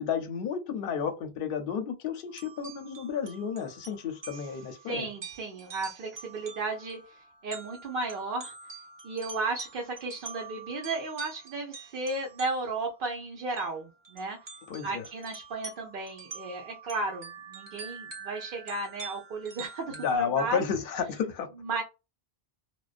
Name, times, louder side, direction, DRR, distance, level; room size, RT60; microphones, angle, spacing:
voice 1, 0.0-5.1 14.7-15.1 19.9-21.5, left 6 dB, 65° left, 0.7 m, -32 dB
sound 1, 2.3-12.9 13.6-13.7 14.0-20.2, right 5 dB, 40° right, 0.4 m, -46 dB
voice 2, 4.8-8.5 9.0-14.4 14.8-20.6 21.6-21.8, right 3 dB, 60° right, 0.8 m, -34 dB
2.4 x 2.2 x 2.4 m
omnidirectional pair, 1.0 m